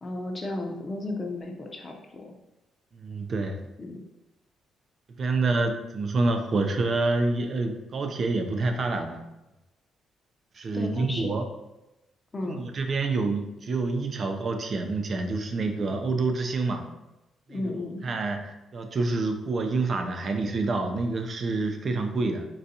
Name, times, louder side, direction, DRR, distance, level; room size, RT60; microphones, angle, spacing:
voice 1, 0.0-2.3 3.8-4.0 10.7-11.3 12.3-12.7 17.5-18.0, left 2 dB, 30° left, 2 dB, 0.6 m, -34 dB
voice 2, 3.0-3.7 5.1-9.2 10.6-11.5 12.5-16.9 17.5-17.7 18.0-22.5, right 3 dB, 45° right, 5 dB, 0.4 m, -27 dB
3.8 x 2.3 x 2.7 m, 0.97 s
cardioid pair, 90°, 0 cm